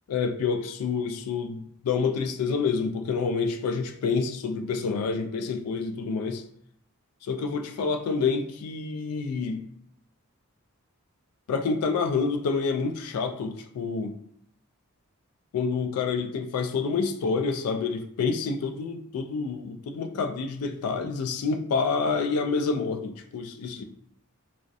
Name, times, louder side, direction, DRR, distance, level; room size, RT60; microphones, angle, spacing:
voice 1, 0.1-6.4 7.3-9.6 11.5-14.1 15.5-23.8, left 5 dB, 85° left, 6 dB, 0.3 m, -28 dB
2.3 x 2.1 x 2.6 m, 0.71 s
head